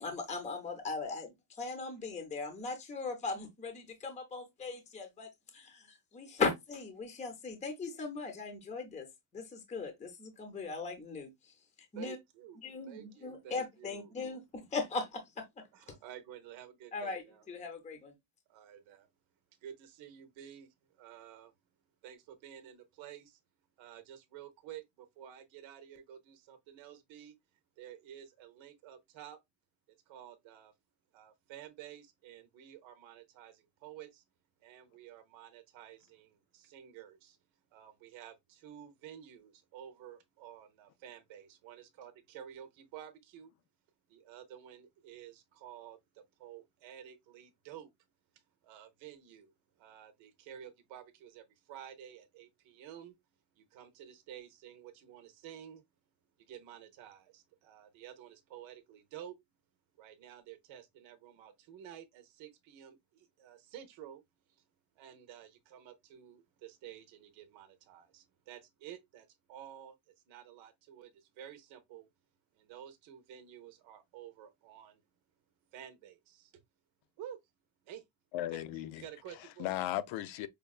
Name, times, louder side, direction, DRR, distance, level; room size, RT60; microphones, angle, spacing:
voice 1, 0.0-9.1 9.3-11.5 11.9-12.2 12.6-15.6 16.9-18.1, left 4 dB, 15° left, 0.6 m, -39 dB
voice 2, 11.9-12.6 12.9-14.1 15.7-17.4 18.5-19.1 19.6-21.5 22.0-23.4 23.8-27.3 27.8-29.4 30.1-30.7 31.1-34.2 34.6-37.4 37.7-43.5 44.1-47.9 48.6-49.5 49.8-53.1 53.6-55.8 56.5-59.4 60.0-64.2 65.0-69.9 70.3-72.1 72.6-75.0 75.7-76.6 77.2-77.4 77.9-78.0 79.0-79.7, right 10 dB, 85° right, 0.8 m, -51 dB
voice 3, 78.3-80.5, left 13 dB, 90° left, 0.6 m, -37 dB
5.2 x 2.2 x 2.3 m
cardioid pair, 160°, 45 cm